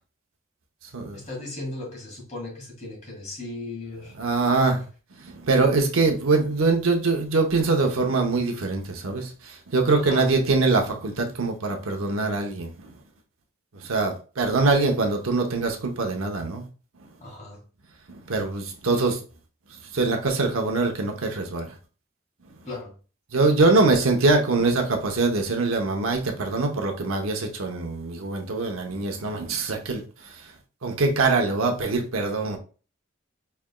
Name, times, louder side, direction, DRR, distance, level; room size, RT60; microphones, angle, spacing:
voice 1, 1.1-4.1 9.9-10.3 17.2-17.6 22.7-22.9 23.8-23.9, left 2 dB, 35° left, 1.8 m, -37 dB
voice 2, 4.2-4.8 5.3-9.3 9.7-12.7 13.7-16.6 18.1-19.2 19.9-21.7 23.3-30.0 30.8-32.6, right 3 dB, 90° right, 0.8 m, -23 dB
4.9 x 3.3 x 2.2 m
head